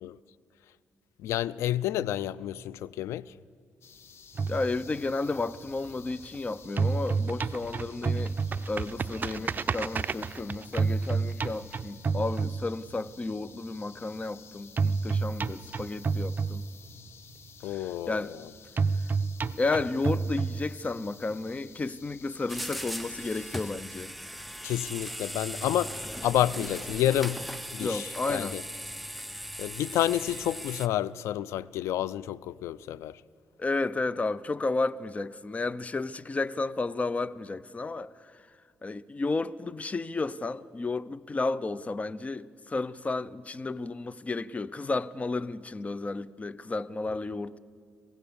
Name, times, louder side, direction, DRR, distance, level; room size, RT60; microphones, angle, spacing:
voice 1, 1.2-3.3 17.6-18.5 24.6-27.4 27.7-28.6 29.6-33.2, left 12 dB, 90° left, 0.4 m, -30 dB
sound 1, 3.8-23.7, left 6 dB, 65° left, 1.3 m, -53 dB
sound 2, 4.3-6.4 6.6-13.1 14.8-17.1 18.8-21.1, right 4 dB, 40° right, 0.6 m, -30 dB
voice 2, 4.5-8.4 8.7-16.6 17.6-18.3 19.6-24.1 27.8-28.6 33.6-38.4 38.8-47.6, left 3 dB, 30° left, 0.7 m, -32 dB
sound 3, 22.5-30.9, equal, ahead, 0.8 m, -38 dB
26.0 x 16.5 x 7.0 m
cardioid pair, 75°, 5 cm